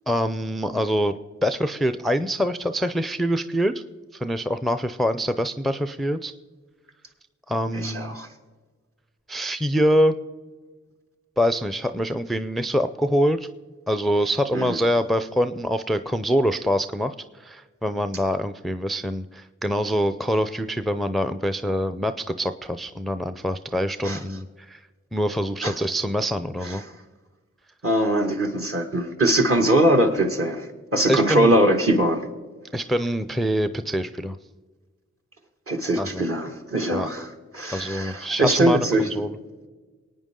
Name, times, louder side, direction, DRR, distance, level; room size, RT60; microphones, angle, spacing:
voice 1, 0.1-1.1 1.4-3.8 4.1-6.3 7.5-8.2 9.3-10.2 11.4-13.5 13.9-24.8 25.1-26.8 31.1-31.5 32.7-34.4 36.0-36.2 36.9-37.1 37.7-39.4, equal, ahead, 10 dB, 0.5 m, -25 dB
voice 2, 7.7-8.3 14.5-14.8 24.0-24.2 25.6-25.7 27.8-30.7 30.9-32.3 35.7-37.3 37.5-39.1, right 1 dB, 50° right, 3 dB, 2.0 m, -21 dB
22.5 x 9.2 x 3.8 m, 1.4 s
cardioid pair, 55°, 29 cm